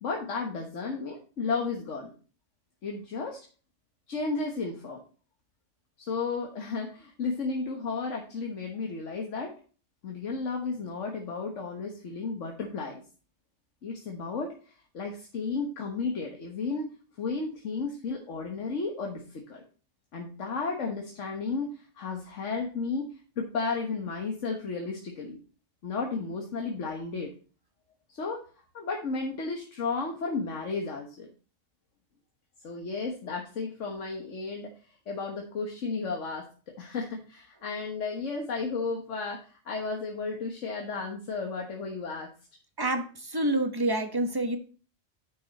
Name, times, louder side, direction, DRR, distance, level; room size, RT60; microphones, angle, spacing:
voice 1, 0.0-2.1 2.8-3.4 4.1-5.0 6.1-9.5 10.0-13.0 13.8-16.9 17.2-19.2 19.5-19.6 20.1-23.1 23.4-25.4 25.8-27.3 28.1-28.4 28.7-31.3 32.6-34.7 35.1-36.5 36.8-42.3, left 4 dB, 80° left, 2 dB, 1.6 m, -33 dB
voice 2, 42.8-44.6, right 1 dB, 20° right, 7 dB, 1.2 m, -27 dB
9.3 x 6.4 x 4.1 m, 0.38 s
omnidirectional pair, 1.2 m